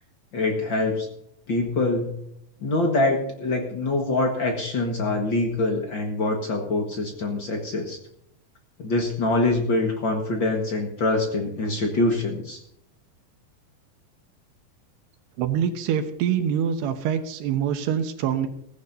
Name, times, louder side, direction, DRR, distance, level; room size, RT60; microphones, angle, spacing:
voice 1, 0.3-1.1 1.5-2.1 2.6-8.0 8.8-12.6, left 2 dB, 60° left, 2 dB, 1.2 m, -24 dB
voice 2, 15.4-18.5, right 8 dB, 80° right, 8 dB, 3.1 m, -25 dB
17.5 x 15.5 x 2.8 m, 0.73 s
omnidirectional pair, 4.8 m